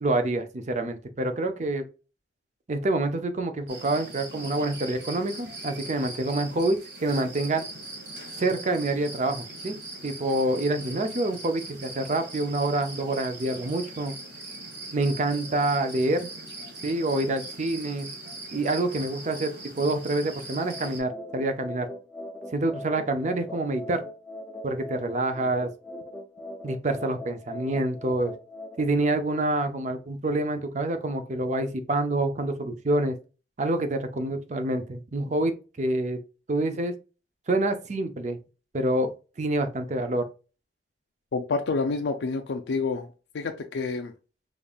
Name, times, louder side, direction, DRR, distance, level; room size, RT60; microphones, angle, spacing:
voice 1, 0.0-1.9 2.7-7.7 8.4-9.8 10.0-14.1 14.9-16.3 16.8-18.1 18.5-19.5 19.8-21.9 22.5-24.0 24.6-25.7 26.6-28.3 28.8-33.2 33.6-36.2 36.5-36.9 37.5-38.4 38.7-39.1 39.4-40.3, right 2 dB, 40° right, 8 dB, 0.5 m, -27 dB
sound 1, 3.7-21.0, right 2 dB, 75° right, 1.8 m, -41 dB
sound 2, 20.6-28.8, left 1 dB, 5° left, 0.6 m, -41 dB
voice 2, 41.3-43.1 43.3-44.1, left 4 dB, 85° left, 5 dB, 0.4 m, -28 dB
5.2 x 2.4 x 2.4 m, 0.34 s
head